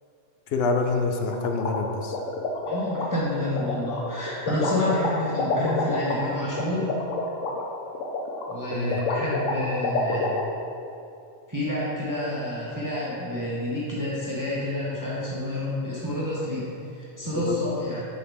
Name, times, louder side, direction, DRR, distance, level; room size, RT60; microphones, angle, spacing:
voice 1, 0.5-2.2 8.7-9.0 17.4-17.6, left 3 dB, 60° left, 4 dB, 0.7 m, -26 dB
sound 1, 1.3-10.4, left 3 dB, 80° left, 1.1 m, -28 dB
voice 2, 2.6-6.9 8.5-10.4 11.5-16.7 17.0-18.1, left 1 dB, 15° right, -7 dB, 1.0 m, -29 dB
7.9 x 5.3 x 3.5 m, 2.6 s
omnidirectional pair, 1.3 m